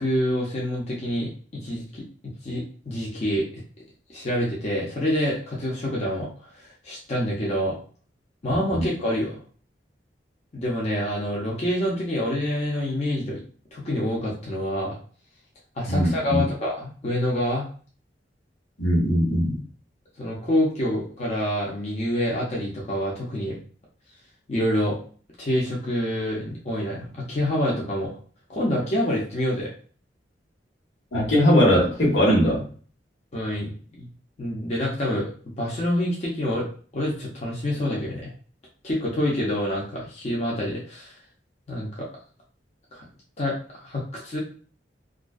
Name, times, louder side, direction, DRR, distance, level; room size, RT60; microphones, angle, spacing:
voice 1, 0.0-2.0 2.4-3.6 4.1-7.8 8.4-9.3 10.5-13.4 13.7-15.0 15.8-17.7 20.2-23.6 24.5-25.0 25.4-28.1 28.5-29.7 33.3-34.1 34.4-35.3 35.6-36.7 36.9-38.3 38.8-41.1 41.7-42.1 42.9-43.0 43.4-44.4, left 1 dB, 40° left, -4 dB, 0.6 m, -27 dB
voice 2, 15.9-16.4 18.8-19.6 31.1-32.6, equal, 85° left, -4 dB, 1.2 m, -20 dB
2.4 x 2.2 x 2.3 m, 0.41 s
head